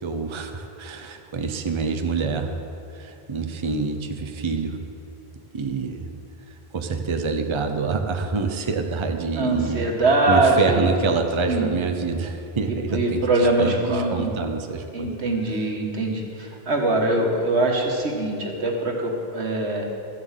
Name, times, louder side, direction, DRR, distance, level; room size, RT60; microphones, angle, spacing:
voice 1, 0.0-2.6 2.9-4.8 5.5-6.1 6.5-9.8 10.3-15.1, right 4 dB, 30° right, 5 dB, 0.7 m, -26 dB
voice 2, 9.4-10.9 11.5-11.7 12.7-14.3 14.9-19.9, right 2 dB, 85° right, 1 dB, 1.8 m, -22 dB
13.0 x 7.4 x 7.4 m, 2.7 s
omnidirectional pair, 1.1 m